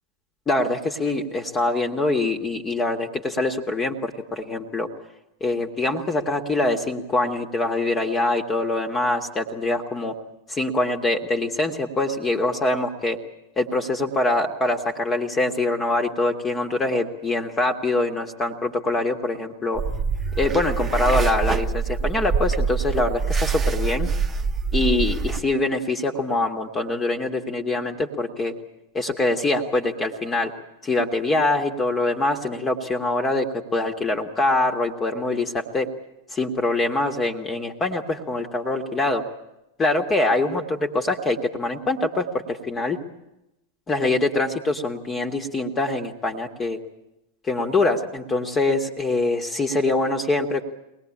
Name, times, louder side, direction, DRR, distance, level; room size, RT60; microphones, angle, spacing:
voice 1, 0.5-4.9 5.4-10.2 10.5-13.2 13.6-19.8 20.4-24.1 24.7-28.5 28.9-30.5 30.8-35.9 36.3-39.2 39.8-43.0 43.9-46.8 47.5-50.6, left 2 dB, 20° left, 4 dB, 1.9 m, -24 dB
sound 1, 19.8-25.4, right 5 dB, 20° right, 1.3 m, -24 dB
23.5 x 19.0 x 8.8 m, 0.91 s
figure-of-eight pair, 90°, 0 cm